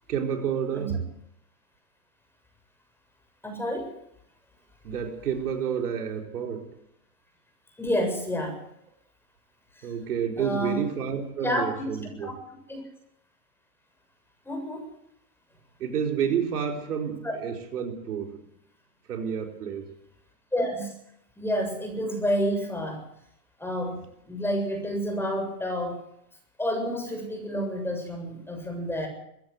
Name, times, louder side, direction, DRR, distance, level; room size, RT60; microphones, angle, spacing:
voice 1, 0.1-1.0 4.8-6.8 9.8-12.4 15.8-18.4 19.1-19.9, right 7 dB, 80° right, 2 dB, 4.5 m, -30 dB
voice 2, 3.4-3.9 7.8-8.6 10.4-10.9 11.4-11.7 12.2-12.3 12.7-12.8 14.4-14.9 17.2-17.4 20.5-20.9 21.4-23.0 23.6-24.0 24.3-26.0 26.6-29.1, equal, 5° left, 3 dB, 7.3 m, -29 dB
21.5 x 16.0 x 7.9 m, 0.75 s
hypercardioid pair, 125°, 45 cm